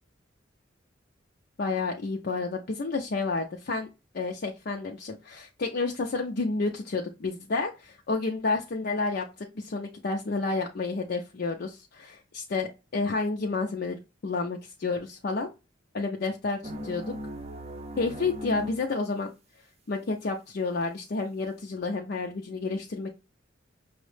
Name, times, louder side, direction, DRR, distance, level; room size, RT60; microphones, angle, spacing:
voice 1, 1.6-3.9 4.1-15.5 15.9-17.1 18.0-19.3 19.9-23.1, left 3 dB, 50° left, 1 dB, 0.4 m, -30 dB
sound 1, 16.6-18.9, equal, 30° right, 0.5 m, -37 dB
5.6 x 2.0 x 3.2 m, 0.27 s
head